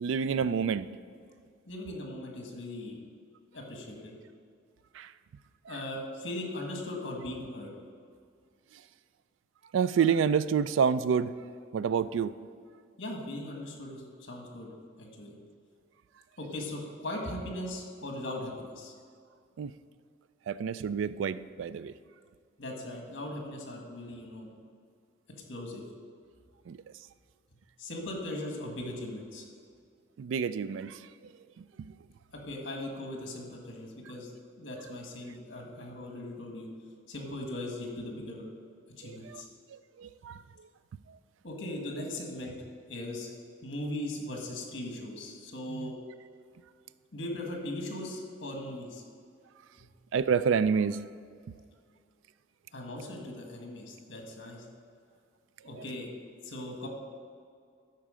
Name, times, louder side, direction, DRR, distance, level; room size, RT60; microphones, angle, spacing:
voice 1, 0.0-0.9 4.9-5.1 9.7-11.3 11.7-12.3 19.6-19.7 20.5-21.9 26.7-26.8 30.2-31.3 31.8-31.9 39.0-39.4 39.7-40.4 45.7-45.9 50.1-51.0 51.5-51.6, right 6 dB, 75° right, 16 dB, 0.3 m, -28 dB
voice 2, 1.7-3.0 3.5-4.1 5.7-7.7 13.0-14.7 15.0-15.3 16.4-18.9 22.6-24.5 25.5-25.8 27.8-29.4 32.3-34.3 34.6-36.7 37.1-38.5 39.0-39.5 41.4-42.6 42.9-43.3 43.6-45.9 47.1-49.0 49.8-49.9 52.7-54.6 55.6-56.1 56.4-56.9, left 1 dB, 60° left, 1 dB, 1.6 m, -39 dB
12.0 x 4.6 x 5.0 m, 2.2 s
head